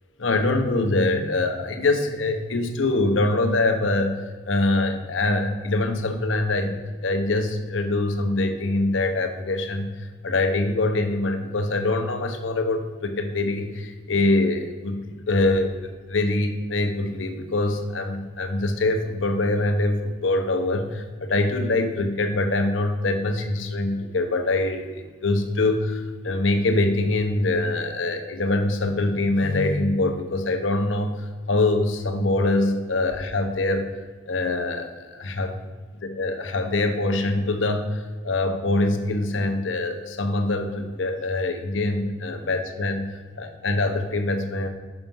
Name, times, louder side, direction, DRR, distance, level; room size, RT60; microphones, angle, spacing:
voice 1, 0.2-33.9 34.3-35.6 36.0-44.7, left 2 dB, 85° left, 6 dB, 0.9 m, -24 dB
5.9 x 5.8 x 5.4 m, 1.4 s
head